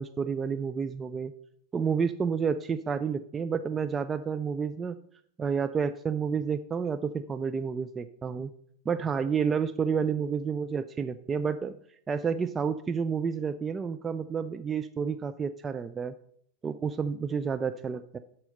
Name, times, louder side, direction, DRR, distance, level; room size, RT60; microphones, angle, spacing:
voice 1, 0.0-1.3 1.7-5.0 5.4-8.5 8.9-11.7 12.1-16.1 16.6-18.2, right 6 dB, 20° right, 9 dB, 0.4 m, -30 dB
12.0 x 4.3 x 5.3 m, 0.66 s
figure-of-eight pair, 90°, 0 cm